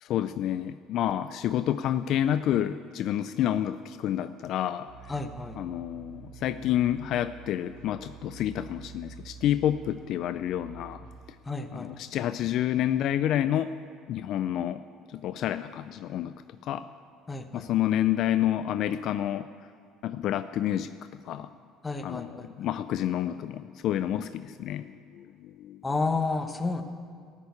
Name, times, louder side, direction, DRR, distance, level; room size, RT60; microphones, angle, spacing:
voice 1, 0.0-4.9 5.6-11.0 11.7-13.7 14.1-14.8 15.1-16.3 16.6-16.9 17.5-19.5 20.0-21.5 22.0-25.8, left 11 dB, 60° left, 12 dB, 0.3 m, -29 dB
sound 1, 4.9-11.2, right 5 dB, 85° right, 1.1 m, -48 dB
voice 2, 5.1-5.6 11.4-11.9 17.3-17.7 21.8-22.5 25.8-26.8, left 3 dB, 15° left, 7 dB, 0.9 m, -31 dB
14.5 x 6.6 x 8.4 m, 2.2 s
cardioid pair, 110°, 0 cm